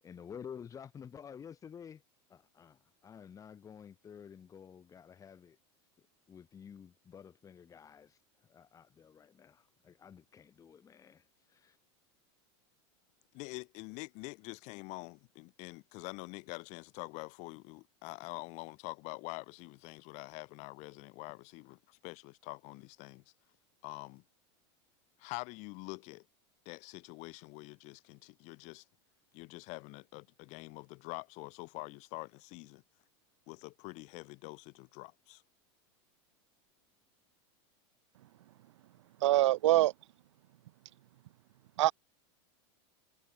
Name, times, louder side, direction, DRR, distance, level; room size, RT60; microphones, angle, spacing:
voice 1, 0.0-2.0 2.3-5.6 6.3-8.2 8.5-11.2 11.5-11.8, left 7 dB, 20° left, 2.5 m, -51 dB
voice 2, 13.3-23.2 23.8-24.2 25.2-26.2 26.6-28.8 29.3-32.8 33.5-35.4, left 27 dB, 50° left, 2.8 m, -46 dB
voice 3, 39.2-39.9 41.8-41.9, right 15 dB, 85° right, 0.6 m, -24 dB
supercardioid pair, 135°, 15 cm